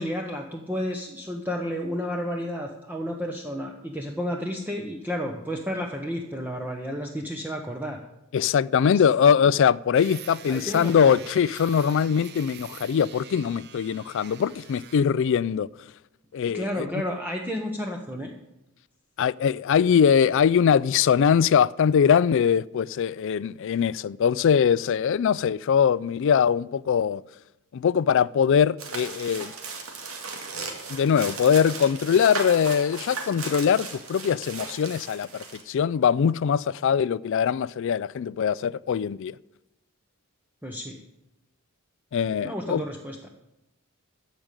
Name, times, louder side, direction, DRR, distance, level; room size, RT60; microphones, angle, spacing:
voice 1, 0.0-8.0 8.9-9.0 10.5-11.2 16.5-18.3 40.6-41.0 42.4-43.3, equal, 10° right, 0.9 m, -31 dB
voice 2, 8.3-15.7 16.3-16.9 19.2-27.2 27.7-29.5 30.9-39.3 42.1-42.8, left 7 dB, 60° left, 0.3 m, -22 dB
sound 1, 9.9-15.1, right 9 dB, 50° right, 0.8 m, -45 dB
sound 2, 28.8-35.6, right 4 dB, 80° right, 2.2 m, -36 dB
15.0 x 5.2 x 8.9 m
head